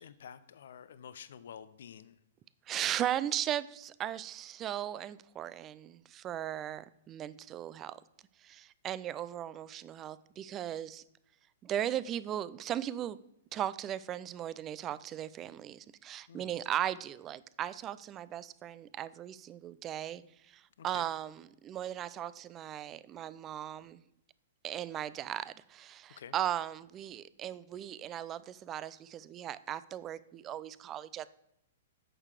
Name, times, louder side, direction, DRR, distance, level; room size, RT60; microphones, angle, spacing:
voice 1, 0.0-2.2 16.3-16.5 20.8-21.1 26.1-26.3, left 8 dB, 65° left, 15 dB, 0.5 m, -49 dB
voice 2, 2.7-8.0 8.4-11.0 11.6-13.2 13.5-20.2 20.8-24.0 24.6-31.3, right 11 dB, 30° right, 17 dB, 0.4 m, -37 dB
8.8 x 6.5 x 4.8 m, 0.77 s
hypercardioid pair, 115°, 0 cm